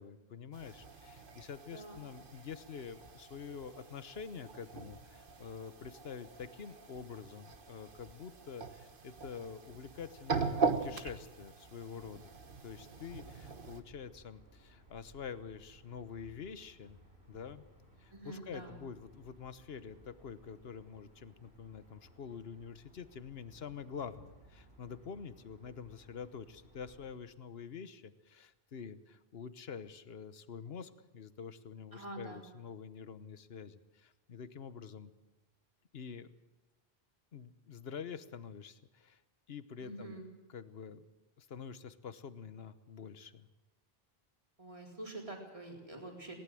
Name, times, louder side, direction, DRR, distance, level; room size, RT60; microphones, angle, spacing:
voice 1, 0.0-12.3 12.6-17.0 17.3-17.6 18.0-35.1 35.9-36.3 37.3-39.2 39.5-40.2 40.5-41.1 41.4-43.5, left 6 dB, 75° left, 13 dB, 1.3 m, -47 dB
sound 1, 0.5-13.8, right 4 dB, 60° right, 1.5 m, -41 dB
sound 2, 13.0-27.2, right 1 dB, 80° right, 5.8 m, -62 dB
voice 2, 18.1-18.8 31.9-32.4 39.8-40.3 44.6-46.3, right 2 dB, 35° right, 1 dB, 4.2 m, -46 dB
19.5 x 18.5 x 7.6 m, 1.0 s
omnidirectional pair, 1.0 m